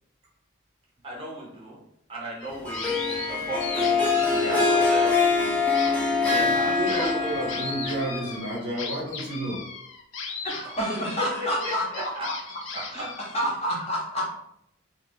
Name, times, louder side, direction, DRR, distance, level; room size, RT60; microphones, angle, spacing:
voice 1, 1.0-1.8 2.1-7.3 11.2-12.3 12.7-13.1 13.8-13.9, equal, 25° right, -4 dB, 0.7 m, -36 dB
sound 1, 2.4-3.3 3.6-5.4 5.7-13.6, left 5 dB, 70° left, 0.5 m, -37 dB
Harp, 2.7-8.4, left 4 dB, 5° left, 0.4 m, -24 dB
voice 2, 6.2-9.6, right 1 dB, 75° right, -5 dB, 1.2 m, -31 dB
voice 3, 10.4-12.1 12.9-13.0 13.3-14.3, equal, 30° left, -4 dB, 0.7 m, -28 dB
2.4 x 2.4 x 3.4 m, 0.76 s
head